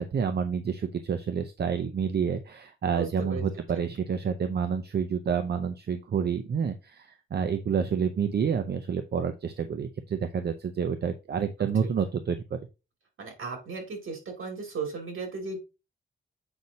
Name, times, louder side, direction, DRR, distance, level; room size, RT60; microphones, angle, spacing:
voice 1, 0.0-12.6, right 6 dB, 55° right, 8 dB, 0.6 m, -29 dB
voice 2, 2.9-3.5 11.6-11.9 13.2-15.6, right 4 dB, 80° right, 2 dB, 2.6 m, -36 dB
7.9 x 5.3 x 2.8 m, 0.29 s
wide cardioid pair, 110°, 21 cm